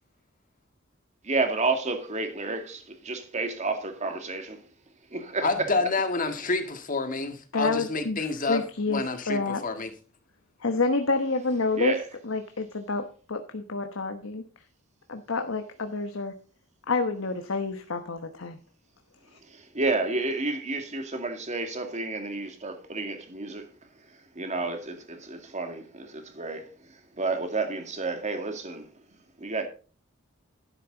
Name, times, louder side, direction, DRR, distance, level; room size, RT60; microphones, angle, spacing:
voice 1, 1.2-4.7 5.1-5.7 11.7-12.0 19.4-23.7 24.1-28.9 29.4-29.7, right 3 dB, 35° right, 2.2 m, -31 dB
voice 2, 5.4-9.9, left 3 dB, 40° left, 1.9 m, -28 dB
voice 3, 7.5-9.6 10.6-12.0 12.2-14.4 15.1-16.4 16.9-18.6, left 3 dB, 75° left, 1.1 m, -28 dB
12.0 x 10.5 x 4.0 m
head